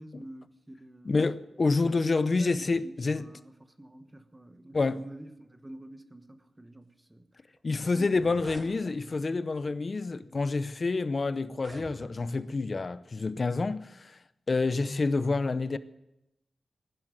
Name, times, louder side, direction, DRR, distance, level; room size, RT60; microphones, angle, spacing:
voice 1, 0.0-1.3 2.0-7.3 7.8-8.4, right 1 dB, 15° right, 1.1 m, -47 dB
voice 2, 1.0-3.2 4.7-5.0 7.6-14.2 14.5-15.8, left 3 dB, 40° left, 0.6 m, -28 dB
sound 1, 7.6-7.7 7.9-8.7 9.6-9.8 10.5-10.6 11.4-12.4, right 1 dB, 30° right, 2.3 m, -47 dB
16.0 x 11.0 x 7.6 m
wide cardioid pair, 155°, 0 cm